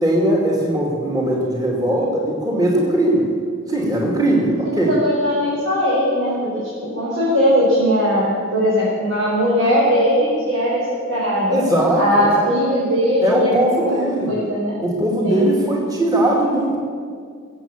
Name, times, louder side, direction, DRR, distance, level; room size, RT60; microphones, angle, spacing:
voice 1, 0.0-3.3 3.7-5.0 11.5-12.5 13.2-14.4 14.8-16.8, right 1 dB, 20° right, -3 dB, 2.5 m, -19 dB
voice 2, 4.6-6.6 7.0-11.6 12.0-14.0 14.2-14.8 15.2-15.5, equal, 75° right, -8 dB, 4.7 m, -19 dB
23.0 x 8.1 x 7.3 m, 2.1 s
head